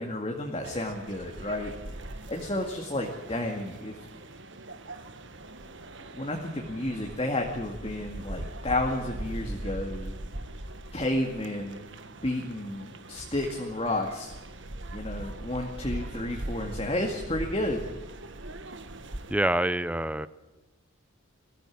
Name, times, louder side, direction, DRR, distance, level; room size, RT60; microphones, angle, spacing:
voice 1, 0.0-1.7 2.0-4.0 6.2-10.2 10.9-11.9 12.2-14.3 14.9-17.9, left 1 dB, 25° left, 1 dB, 2.1 m, -31 dB
sound 1, 0.6-19.3, right 1 dB, 60° right, 1.6 m, -41 dB
voice 2, 19.3-20.3, right 1 dB, 5° right, 15 dB, 0.7 m, -26 dB
22.5 x 15.0 x 8.7 m, 1.1 s
head